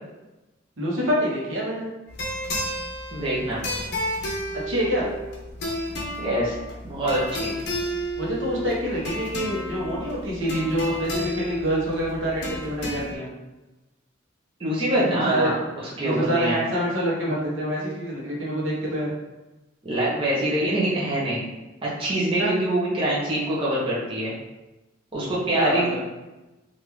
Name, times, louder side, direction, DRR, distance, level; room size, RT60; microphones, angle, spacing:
voice 1, 0.8-1.9 4.6-5.1 8.2-13.3 15.2-15.5 15.9-19.1 22.4-22.5 25.5-26.0, equal, 75° right, -4 dB, 0.9 m, -26 dB
sound 1, 2.1-13.2, equal, 55° left, 0.7 m, -32 dB
voice 2, 3.1-3.6 6.2-6.6 6.8-7.5 14.6-16.6 19.8-21.5 21.8-24.3 25.1-25.9, right 1 dB, 25° right, -7 dB, 0.7 m, -25 dB
3.4 x 2.5 x 3.0 m, 1.1 s
head